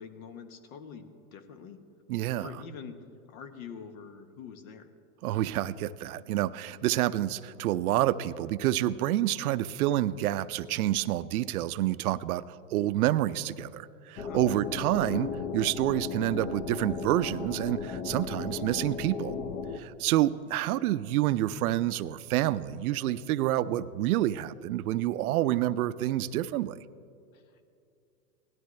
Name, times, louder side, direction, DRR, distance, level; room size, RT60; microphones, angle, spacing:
voice 1, 0.0-1.8 2.4-4.9 14.3-14.4 20.4-20.5 27.3-27.4, left 6 dB, 65° left, 9 dB, 1.3 m, -45 dB
voice 2, 2.1-2.5 5.2-19.4 19.7-26.8, right 14 dB, 75° right, 15 dB, 0.6 m, -28 dB
sound 1, 14.2-19.8, left 5 dB, 25° left, 0.5 m, -36 dB
18.0 x 12.0 x 3.2 m, 2.5 s
hypercardioid pair, 130°, 44 cm